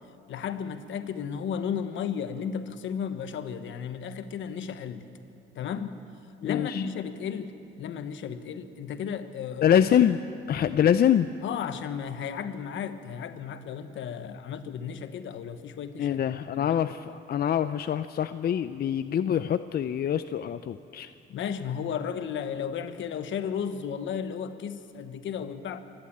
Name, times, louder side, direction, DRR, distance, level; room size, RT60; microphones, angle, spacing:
voice 1, 0.3-5.0 5.5-6.0 6.4-7.5 7.8-9.8 11.4-16.2 16.6-16.8 21.3-25.8, left 7 dB, 75° left, 10 dB, 1.2 m, -34 dB
voice 2, 6.4-6.8 9.6-10.2 10.5-11.3 16.0-21.1, left 9 dB, 50° left, 11 dB, 0.5 m, -25 dB
26.0 x 12.0 x 8.6 m, 2.7 s
cardioid pair, 90°, 20 cm